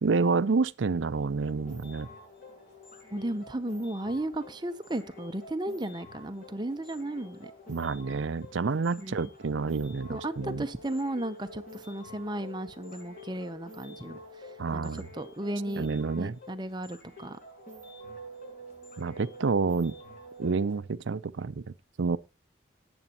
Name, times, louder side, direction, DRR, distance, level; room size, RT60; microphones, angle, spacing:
voice 1, 0.0-2.1 7.7-10.6 14.6-15.1 15.8-16.4 19.0-19.9 20.4-22.2, right 4 dB, 85° right, 0.5 m, -29 dB
sound 1, 1.4-20.8, left 1 dB, 45° left, 5.7 m, -48 dB
voice 2, 3.1-7.5 9.0-9.2 10.1-15.9 16.2-17.4, right 1 dB, 25° right, 0.7 m, -35 dB
18.0 x 7.9 x 2.9 m
head